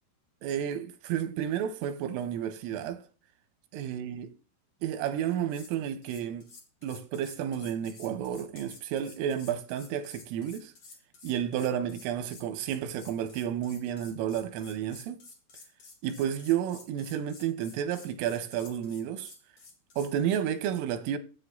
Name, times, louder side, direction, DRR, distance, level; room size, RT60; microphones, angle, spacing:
voice 1, 0.4-3.0 3.7-4.3 4.8-6.5 6.8-10.7 11.2-15.2 16.0-19.3 20.0-21.2, right 9 dB, 85° right, 3.3 m, -31 dB
sound 1, 5.2-5.7 6.0-20.1, left 4 dB, 70° left, 1.6 m, -52 dB
14.0 x 8.2 x 2.6 m
omnidirectional pair, 5.9 m